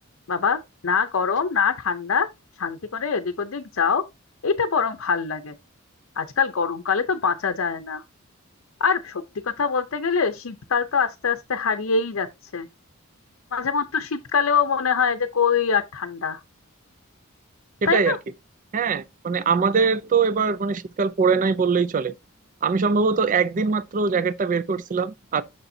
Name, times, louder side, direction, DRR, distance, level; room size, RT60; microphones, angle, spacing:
voice 1, 0.3-2.3 2.6-4.0 4.4-5.5 6.2-8.0 8.8-12.3 12.5-12.7 13.5-16.4 17.8-18.2, left 6 dB, 70° left, 0.6 m, -24 dB
voice 2, 17.8-18.2 18.7-22.1 22.6-25.4, right 5 dB, 40° right, 0.4 m, -22 dB
6.9 x 6.7 x 2.7 m
head